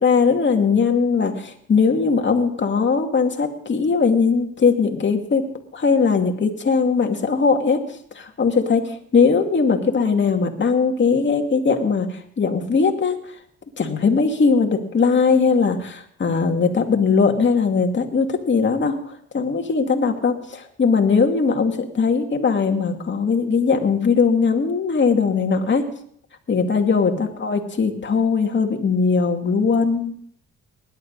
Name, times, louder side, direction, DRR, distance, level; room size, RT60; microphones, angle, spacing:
voice 1, 0.0-5.4 5.7-7.8 8.1-13.2 13.8-25.8 26.5-30.1, left 5 dB, 40° left, 4 dB, 2.4 m, -20 dB
20.0 x 11.5 x 4.0 m, 0.63 s
cardioid pair, 90°, 30 cm